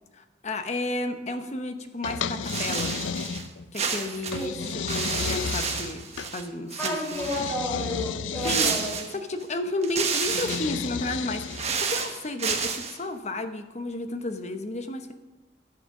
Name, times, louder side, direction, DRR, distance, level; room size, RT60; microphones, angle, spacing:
voice 1, 0.1-3.0 3.7-7.2 8.4-8.7 9.1-15.1, left 2 dB, 35° left, 7 dB, 0.8 m, -32 dB
sound 1, 2.0-3.7 4.3-6.3 7.1-9.0 10.2-11.8, left 6 dB, 80° left, 0.5 m, -33 dB
sound 2, 2.4-3.5 3.7-6.5 6.7-7.5 8.4-9.4 9.8-10.7 11.3-13.0, right 6 dB, 35° right, 1.2 m, -30 dB
voice 2, 6.8-8.9, left 1 dB, 5° left, -8 dB, 5.1 m, -31 dB
12.0 x 7.9 x 6.0 m, 1.1 s
head